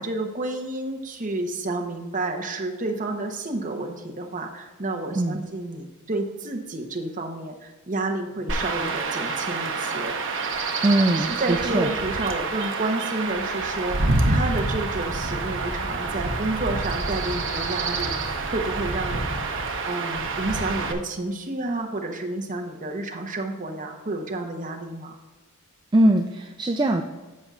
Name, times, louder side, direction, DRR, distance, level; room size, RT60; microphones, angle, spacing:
voice 1, 0.0-10.2 11.2-19.4 19.8-25.2, right 2 dB, 35° right, 2 dB, 1.0 m, -30 dB
Chirp tweet / Wind / Stream, 8.5-20.9, right 3 dB, 60° right, 0.9 m, -27 dB
voice 2, 10.8-11.9 25.9-27.0, right 1 dB, 20° right, 4 dB, 0.3 m, -21 dB
13.5 x 5.4 x 2.5 m, 1.2 s
head